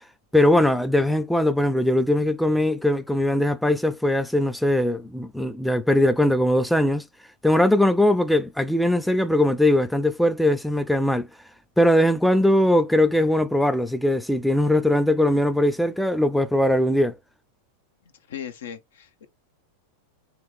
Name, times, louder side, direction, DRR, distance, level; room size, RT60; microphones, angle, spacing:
voice 1, 0.3-7.0 7.4-11.3 11.8-17.1, left 1 dB, ahead, 0.3 m, -20 dB
voice 2, 18.3-19.3, left 9 dB, 60° left, 0.7 m, -37 dB
3.4 x 2.9 x 3.4 m
figure-of-eight pair, 90°, 0 cm